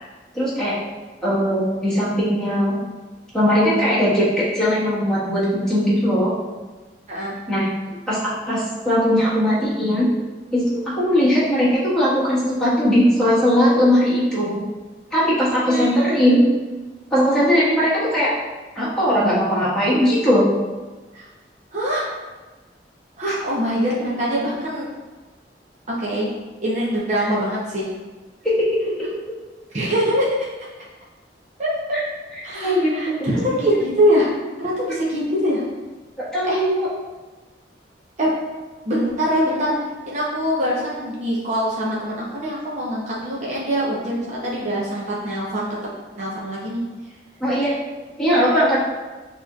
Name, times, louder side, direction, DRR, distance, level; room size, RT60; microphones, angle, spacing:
voice 1, 0.3-0.8 1.2-2.8 3.3-6.3 7.5-7.7 8.1-10.1 10.5-10.6 10.9-14.6 15.1-16.4 17.1-18.3 18.7-20.4 23.3-23.4 27.2-27.3 28.4-28.7 31.9-32.0 32.5-33.3 36.2-36.9 47.4-47.7 48.2-48.8, equal, 5° left, -11 dB, 1.4 m, -19 dB
voice 2, 15.6-16.3 21.1-21.3 21.7-22.1 23.2-24.9 25.9-26.3 26.6-27.9 29.7-30.4 31.6-31.7 32.4-34.3 34.6-35.6 36.4-36.6 38.2-38.3 38.8-39.8 40.1-45.7 46.2-46.8, equal, 40° right, -6 dB, 0.8 m, -23 dB
6.4 x 3.1 x 2.4 m, 1.2 s
head